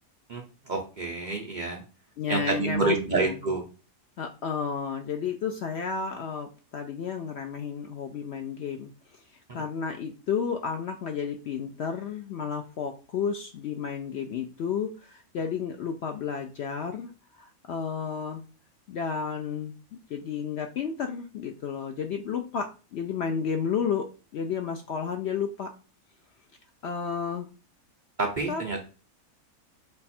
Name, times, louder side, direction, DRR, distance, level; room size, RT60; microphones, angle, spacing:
voice 1, 0.7-1.8 2.3-3.6 28.2-28.9, right 3 dB, 50° right, 0 dB, 0.5 m, -28 dB
voice 2, 2.2-3.4 4.2-8.9 9.5-17.1 17.4-18.4 18.9-25.7 26.8-27.5 28.5-28.6, left 6 dB, 70° left, 5 dB, 0.6 m, -32 dB
5.3 x 2.4 x 4.2 m, 0.34 s
omnidirectional pair, 1.6 m